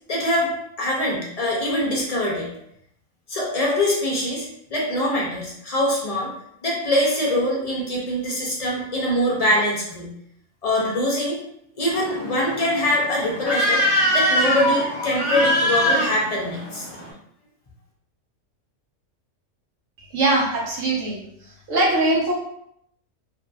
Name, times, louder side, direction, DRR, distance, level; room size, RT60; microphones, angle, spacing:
voice 1, 0.1-0.5 0.8-2.5 3.3-6.3 6.6-10.1 10.6-11.4 11.8-13.8 14.1-16.9, left 1 dB, 50° left, -3 dB, 0.4 m, -23 dB
sound 1, 11.9-17.1, equal, ahead, 1.0 m, -23 dB
voice 2, 20.1-21.2 21.7-22.3, right 2 dB, 85° right, -4 dB, 1.2 m, -21 dB
2.7 x 2.5 x 2.3 m, 0.72 s
omnidirectional pair, 1.3 m